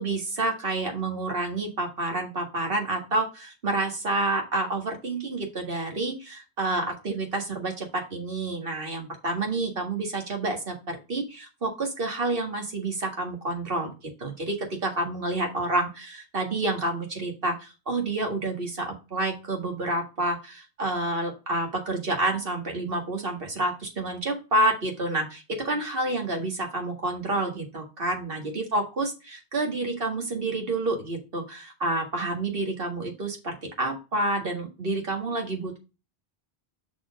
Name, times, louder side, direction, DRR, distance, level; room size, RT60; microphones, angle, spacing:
voice 1, 0.0-13.9 14.2-35.8, right 2 dB, 60° right, 2 dB, 2.0 m, -29 dB
6.0 x 4.3 x 5.1 m, 0.29 s
omnidirectional pair, 1.1 m